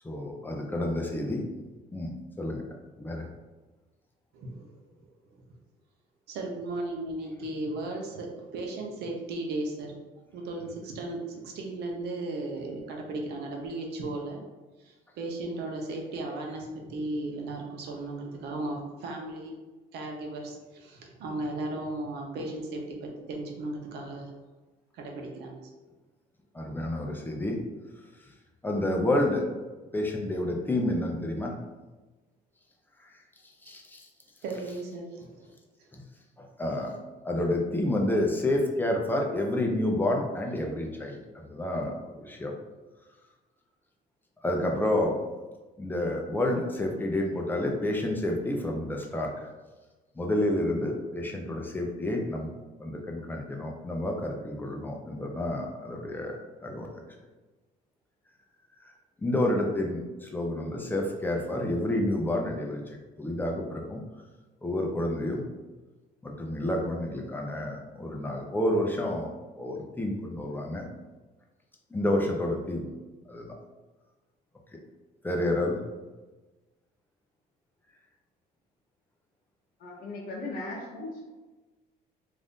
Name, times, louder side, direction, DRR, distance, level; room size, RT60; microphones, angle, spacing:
voice 1, 0.0-1.4 1.9-2.6 3.0-3.3 26.5-27.6 28.2-28.3 28.6-29.4 29.9-31.5 33.0-33.2 33.6-34.1 35.9-36.0 36.4-36.9 37.2-42.5 44.4-45.1 45.8-49.5 50.1-52.5 52.8-57.0 58.8-58.9 59.2-64.0 64.6-65.5 66.2-69.3 69.6-70.9 71.9-72.9 73.3-73.5 75.2-75.8, left 1 dB, 10° left, 1 dB, 0.5 m, -29 dB
voice 2, 4.3-4.8 6.3-9.9 10.3-14.4 14.8-19.6 19.9-24.3 24.9-25.7 34.4-35.5 35.8-35.9, right 2 dB, 75° right, 1 dB, 0.7 m, -36 dB
voice 3, 79.8-81.3, left 2 dB, 55° left, -3 dB, 0.7 m, -38 dB
2.6 x 2.4 x 3.5 m, 1.2 s
cardioid pair, 110°, 17 cm